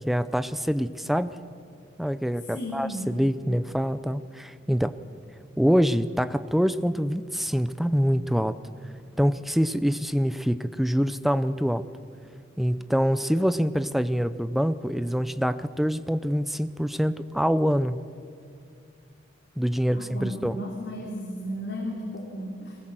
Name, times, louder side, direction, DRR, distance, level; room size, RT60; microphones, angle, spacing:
voice 1, 0.1-1.4 2.0-5.0 5.6-8.6 9.2-11.9 12.6-18.0 19.6-20.6, equal, ahead, 13 dB, 0.5 m, -25 dB
voice 2, 2.5-3.1 19.9-22.8, equal, 65° left, -2 dB, 3.2 m, -34 dB
22.0 x 19.0 x 7.7 m, 2.3 s
head